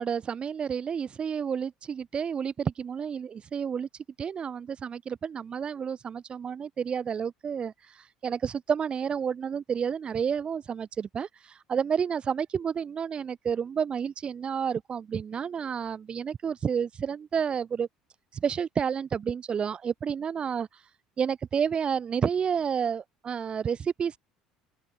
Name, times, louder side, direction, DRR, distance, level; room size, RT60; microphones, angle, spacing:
voice 1, 0.0-3.9 4.2-17.9 18.3-20.7 21.2-24.2, right 7 dB, 35° right, 4.3 m, -30 dB
open air
hypercardioid pair, 65°, 3 cm